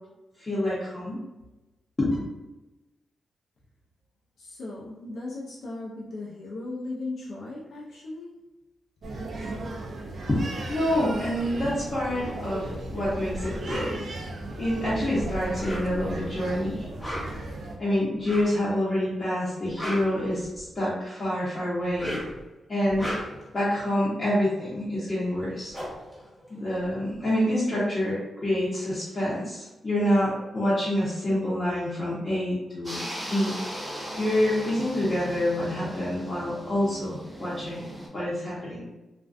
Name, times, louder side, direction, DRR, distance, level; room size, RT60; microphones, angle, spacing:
voice 1, 0.4-1.2 2.0-2.1 10.3-10.4 10.7-14.1 14.6-16.9 17.8-22.1 22.7-23.1 23.5-25.7 26.5-33.6 34.2-38.8, left 1 dB, 30° left, -10 dB, 0.8 m, -27 dB
voice 2, 4.4-8.3, left 2 dB, 70° left, -5 dB, 0.5 m, -37 dB
sound 1, 9.0-17.8, right 2 dB, 60° right, 0.4 m, -35 dB
sound 2, 13.6-13.9 15.4-16.2 16.9-17.5 18.2-18.6 19.5-20.8 21.8-22.4 22.8-23.5 25.1-25.2 25.4-27.1, equal, 10° left, 1.1 m, -36 dB
sound 3, 32.8-38.1, equal, 10° right, 0.7 m, -38 dB
2.5 x 2.2 x 2.3 m, 1.1 s
cardioid pair, 90°, 0 cm